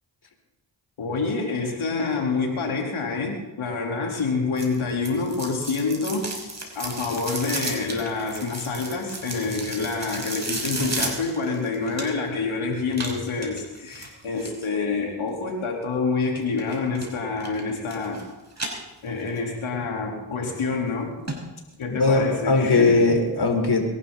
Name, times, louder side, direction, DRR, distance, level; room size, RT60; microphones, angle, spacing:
voice 1, 1.0-18.2 19.0-21.1 21.8-23.0, left 4 dB, 70° left, 0 dB, 4.2 m, -27 dB
sound 1, 4.6-12.4 12.9-14.7 16.6-17.1 17.4-18.2 18.5-19.4 19.8-19.9 20.5-20.6 20.9-21.0 21.3-21.4 21.7-21.8, right 2 dB, 35° right, 5.5 m, -33 dB
voice 2, 21.9-23.8, left 3 dB, 50° left, 3 dB, 4.5 m, -19 dB
23.0 x 12.0 x 4.2 m, 1.1 s
supercardioid pair, 40°, 49 cm